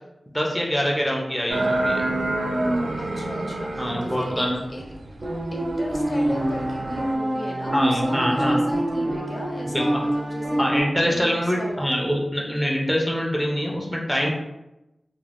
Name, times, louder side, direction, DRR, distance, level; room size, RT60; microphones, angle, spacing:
voice 1, 0.3-2.0 3.8-4.6 7.7-8.6 9.7-9.9 10.6-14.3, equal, ahead, -2 dB, 0.5 m, -24 dB
sound 1, 1.5-7.2, right 2 dB, 80° right, 0.3 m, -28 dB
voice 2, 3.0-4.5 4.7-4.8 5.5-10.6 11.0-11.9, equal, 45° left, -1 dB, 0.6 m, -35 dB
sound 2, 5.2-10.8, right 1 dB, 55° right, 0.8 m, -26 dB
2.4 x 2.1 x 3.3 m, 0.93 s
wide cardioid pair, 85°, 0 cm